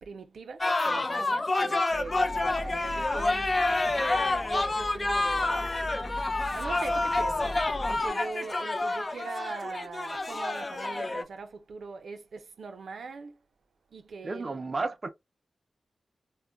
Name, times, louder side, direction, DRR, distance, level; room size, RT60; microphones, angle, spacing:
voice 1, 0.0-3.8 4.1-5.7 6.5-13.4 13.9-14.6, right 4 dB, 85° right, 0.5 m, -41 dB
sound 1, 0.6-11.2, left 2 dB, 35° left, 0.4 m, -28 dB
Bus, 1.9-8.1, equal, 5° left, 0.8 m, -41 dB
voice 2, 14.2-15.1, right 3 dB, 40° right, 0.4 m, -32 dB
2.2 x 2.1 x 3.7 m
wide cardioid pair, 95°, 0 cm